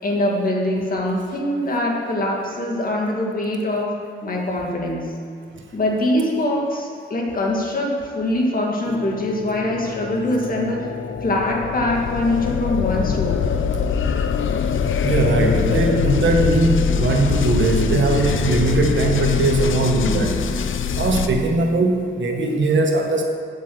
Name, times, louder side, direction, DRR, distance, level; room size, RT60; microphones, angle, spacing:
voice 1, 0.0-3.9 4.2-5.1 5.7-10.9 11.2-13.5, left 1 dB, 45° left, -1 dB, 2.1 m, -23 dB
sound 1, 8.9-21.3, left 7 dB, 85° left, 0.6 m, -23 dB
voice 2, 15.0-20.4 20.9-23.2, right 2 dB, 70° right, 2 dB, 1.4 m, -19 dB
9.4 x 8.2 x 7.9 m, 2.1 s
wide cardioid pair, 155°, 20 cm